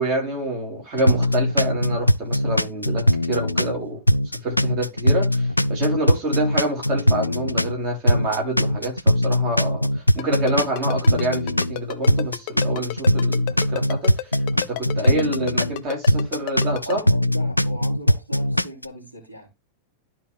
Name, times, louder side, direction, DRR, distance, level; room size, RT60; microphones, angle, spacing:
voice 1, 0.0-4.0 4.4-14.1 14.7-17.0, right 1 dB, 40° right, 3.3 m, -27 dB
sound 1, 1.0-3.8 4.1-7.8 8.1-11.8 12.1-15.8 16.1-18.8, left 1 dB, 85° left, 0.3 m, -20 dB
Ringtone, 10.2-16.9, left 14 dB, 45° left, 0.6 m, -30 dB
voice 2, 16.8-19.5, left 1 dB, 90° right, 3.1 m, -37 dB
12.5 x 4.5 x 3.2 m
figure-of-eight pair, 90°, 0 cm